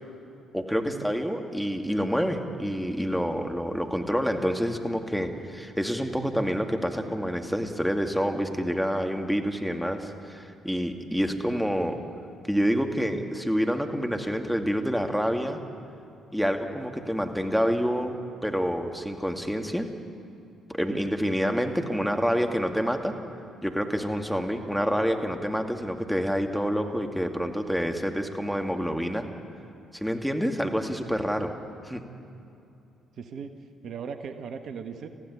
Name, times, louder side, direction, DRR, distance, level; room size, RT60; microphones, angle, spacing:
voice 1, 0.5-12.0 12.5-15.6 16.3-18.1 18.4-19.9 20.7-23.2 23.6-29.2 29.9-31.5 31.8-32.0, equal, ahead, 4 dB, 2.4 m, -27 dB
voice 2, 33.1-33.5 33.8-35.1, right 6 dB, 60° right, 7 dB, 1.4 m, -38 dB
23.0 x 15.0 x 9.7 m, 2.7 s
hypercardioid pair, 50°, 0 cm